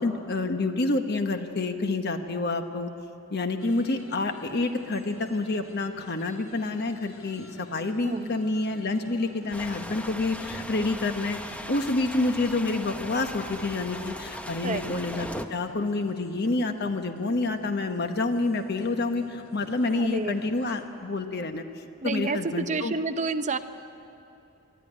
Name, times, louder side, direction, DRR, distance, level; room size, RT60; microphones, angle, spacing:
voice 1, 0.0-2.9 3.3-11.4 11.7-21.6 22.0-22.9, left 2 dB, 50° left, 7 dB, 1.0 m, -28 dB
sound 1, 3.6-20.9, equal, 90° left, 3.1 m, -50 dB
sound 2, 9.5-15.4, left 1 dB, 5° left, 0.7 m, -38 dB
voice 2, 14.6-14.9 19.9-20.4 22.0-23.6, right 3 dB, 35° right, 8 dB, 0.7 m, -29 dB
21.5 x 13.5 x 9.8 m, 2.7 s
head